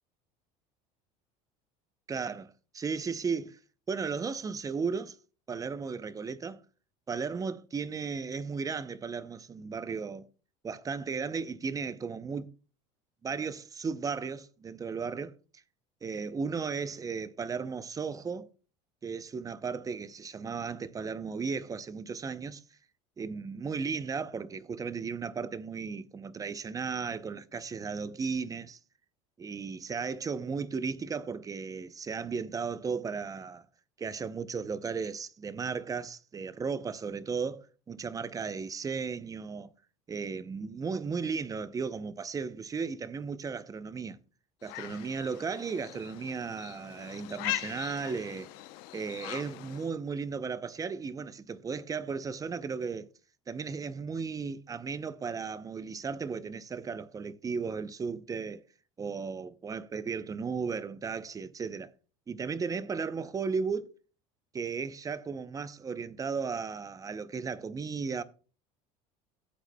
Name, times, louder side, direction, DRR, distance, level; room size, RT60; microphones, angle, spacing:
voice 1, 2.1-3.6 3.9-5.2 5.5-6.6 7.1-10.3 10.6-12.5 13.2-15.3 16.0-18.5 19.0-22.6 23.2-28.8 29.4-33.6 34.0-39.7 40.1-44.2 44.6-48.5 48.9-53.1 53.5-58.6 59.0-61.9 62.3-63.9 64.5-68.2, right 5 dB, 20° right, 0.6 m, -35 dB
sound 1, 44.6-49.9, left 17 dB, 75° left, 0.7 m, -40 dB
14.5 x 8.1 x 2.2 m
supercardioid pair, 110°, 16 cm